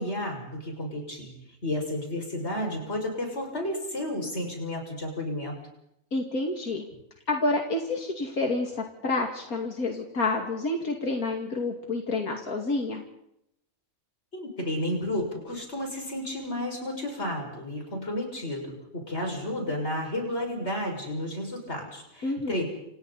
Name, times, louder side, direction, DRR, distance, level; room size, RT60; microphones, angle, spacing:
voice 1, 0.0-1.4 1.6-5.6 14.3-22.7, left 1 dB, 50° left, 2 dB, 6.5 m, -32 dB
voice 2, 6.1-6.8 7.3-13.0 22.2-22.5, left 2 dB, 85° left, 1 dB, 2.9 m, -29 dB
29.0 x 28.0 x 4.2 m, 0.79 s
omnidirectional pair, 1.5 m